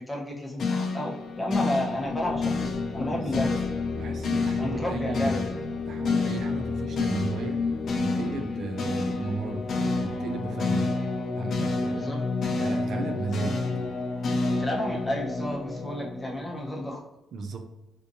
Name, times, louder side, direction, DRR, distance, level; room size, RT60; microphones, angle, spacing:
voice 1, 0.1-3.6 4.6-5.5 11.9-12.2 14.5-17.0, left 1 dB, 10° left, -2 dB, 0.8 m, -31 dB
sound 1, 0.6-16.9, left 3 dB, 55° left, 0.5 m, -29 dB
voice 2, 3.9-5.6 5.9-7.6 8.0-9.6 9.9-10.9 11.4-12.2 12.6-13.6 17.3-17.7, right 3 dB, 65° right, 5 dB, 0.4 m, -34 dB
3.6 x 2.7 x 2.7 m, 0.95 s
cardioid pair, 105°, 0 cm